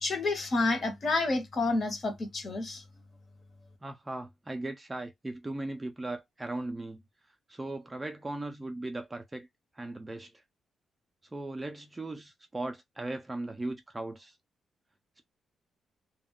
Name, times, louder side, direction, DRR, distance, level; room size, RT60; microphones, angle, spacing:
voice 1, 0.0-2.8, left 3 dB, 40° left, 0.9 m, -29 dB
voice 2, 3.8-7.0 7.5-9.5 9.8-10.4 11.3-14.4, right 2 dB, 15° right, 0.4 m, -38 dB
2.2 x 2.2 x 3.5 m
cardioid pair, 135°, 0 cm